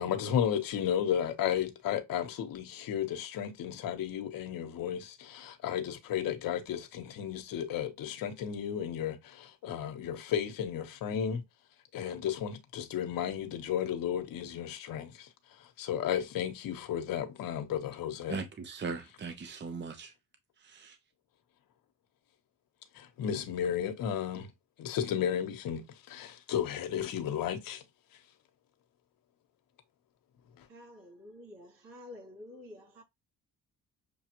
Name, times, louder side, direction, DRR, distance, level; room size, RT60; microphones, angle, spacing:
voice 1, 0.0-11.4 11.9-15.3 15.6-18.4 22.9-24.5 24.8-25.8 26.1-27.8, left 9 dB, 75° left, 1.1 m, -33 dB
voice 2, 18.3-20.1 20.6-21.0, right 4 dB, 30° right, 0.8 m, -39 dB
voice 3, 30.7-33.0, left 1 dB, 70° right, 3.0 m, -49 dB
6.8 x 2.4 x 2.9 m
cardioid pair, 85°, 34 cm